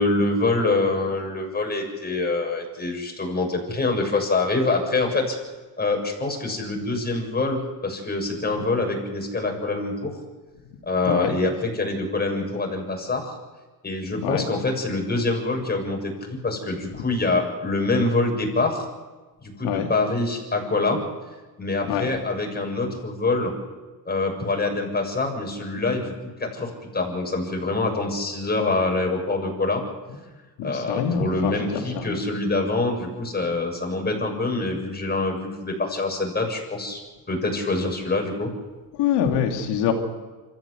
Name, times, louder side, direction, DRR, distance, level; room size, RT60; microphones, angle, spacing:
voice 1, 0.0-5.4 5.8-10.2 10.8-13.4 13.8-18.9 19.4-21.0 21.6-23.5 24.1-29.8 30.6-37.0 37.3-38.5, left 2 dB, 25° left, 2 dB, 7.1 m, -25 dB
voice 2, 11.1-11.4 14.2-14.4 19.6-19.9 21.9-22.1 30.6-32.1 39.0-39.9, left 8 dB, 85° left, 3 dB, 3.1 m, -25 dB
26.0 x 14.5 x 8.2 m, 1.3 s
cardioid pair, 95°, 40 cm